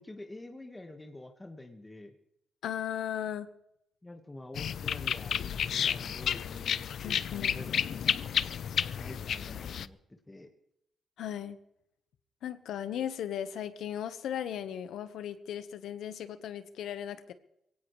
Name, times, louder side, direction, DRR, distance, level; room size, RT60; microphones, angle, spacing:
voice 1, 0.0-2.1 4.0-8.2 9.0-10.5, left 2 dB, 15° left, 4 dB, 1.7 m, -47 dB
voice 2, 2.6-3.5 7.0-7.5 11.2-11.6 12.4-17.3, left 10 dB, 85° left, 10 dB, 1.3 m, -36 dB
sound 1, 4.6-9.9, left 8 dB, 70° left, 0.6 m, -31 dB
22.5 x 17.5 x 3.3 m, 0.79 s
cardioid pair, 110°, 0 cm